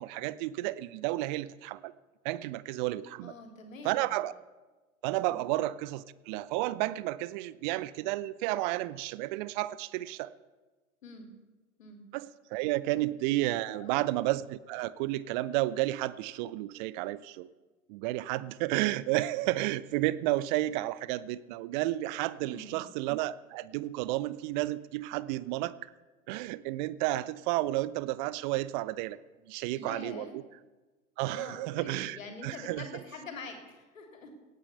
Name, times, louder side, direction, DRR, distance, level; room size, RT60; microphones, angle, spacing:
voice 1, 0.0-1.9 2.2-3.3 3.8-4.3 5.0-10.3 12.1-17.5 17.9-25.9 26.3-29.2 29.5-30.3 31.2-32.9, right 17 dB, 35° right, 19 dB, 0.6 m, -32 dB
voice 2, 3.2-4.1 5.3-5.5 11.0-11.3 11.8-12.0 12.5-12.6 13.7-14.1 22.4-22.9 29.7-30.3 31.3-34.3, left 3 dB, 70° left, 4 dB, 3.2 m, -45 dB
18.0 x 9.1 x 6.7 m, 1.2 s
figure-of-eight pair, 90°, 41 cm